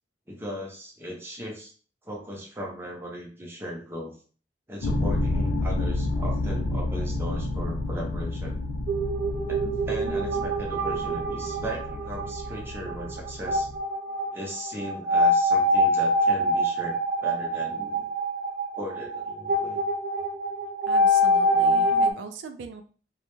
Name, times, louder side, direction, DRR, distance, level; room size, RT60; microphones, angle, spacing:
voice 1, 0.3-1.7 2.0-4.1 4.7-8.6 9.5-13.7 14.3-18.1 18.7-19.8, equal, 15° right, -1 dB, 0.5 m, -37 dB
sound 1, 4.8-13.8, left 2 dB, 85° left, 0.4 m, -30 dB
sound 2, 8.9-22.1, equal, 45° right, 0.8 m, -25 dB
voice 2, 20.9-22.8, right 5 dB, 80° right, 8 dB, 0.3 m, -40 dB
2.2 x 2.1 x 3.0 m, 0.40 s
head